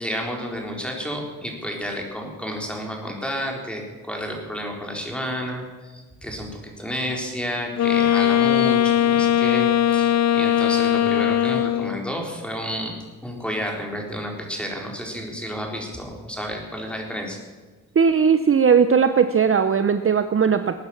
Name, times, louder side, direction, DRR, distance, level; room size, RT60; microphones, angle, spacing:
voice 1, 0.0-13.0 13.2-17.4, equal, 5° left, 1 dB, 4.0 m, -31 dB
Wind instrument woodwind instrument, 7.8-12.1, left 11 dB, 50° left, 0.5 m, -19 dB
voice 2, 18.0-20.7, right 6 dB, 40° right, 9 dB, 0.8 m, -18 dB
20.0 x 9.5 x 7.2 m, 1.3 s
cardioid pair, 95°, 34 cm